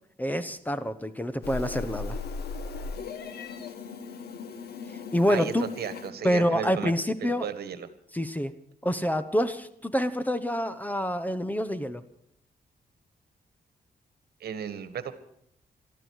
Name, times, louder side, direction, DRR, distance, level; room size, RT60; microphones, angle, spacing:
voice 1, 0.2-2.2 5.1-5.7 6.2-7.5 8.1-8.5 8.8-12.0, equal, 10° left, 12 dB, 1.1 m, -27 dB
Meow, 1.4-6.1, left 4 dB, 85° left, 1.8 m, -37 dB
voice 2, 5.3-6.9 7.2-7.9 14.4-15.1, right 8 dB, 80° right, 12 dB, 1.6 m, -34 dB
22.0 x 13.5 x 4.8 m, 0.74 s
cardioid pair, 120°, 16 cm